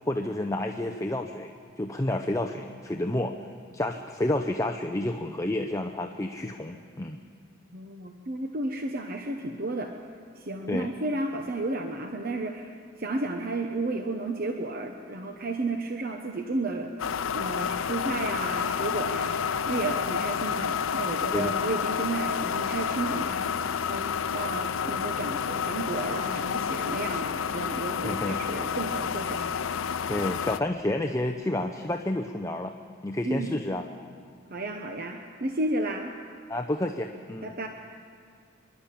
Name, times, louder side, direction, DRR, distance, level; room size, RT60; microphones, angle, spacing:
voice 1, 0.1-3.3 3.7-7.2 10.7-10.9 21.3-21.6 28.0-28.4 30.1-32.7 33.0-33.8 36.5-37.5, left 1 dB, 15° left, 4 dB, 0.7 m, -30 dB
voice 2, 7.7-10.0 10.4-24.1 24.3-29.7 33.2-33.6 34.5-36.1 37.4-37.7, right 2 dB, 45° right, 4 dB, 1.0 m, -32 dB
sound 1, 17.0-30.6, left 7 dB, 85° left, 0.5 m, -30 dB
27.5 x 12.0 x 8.5 m, 2.2 s
head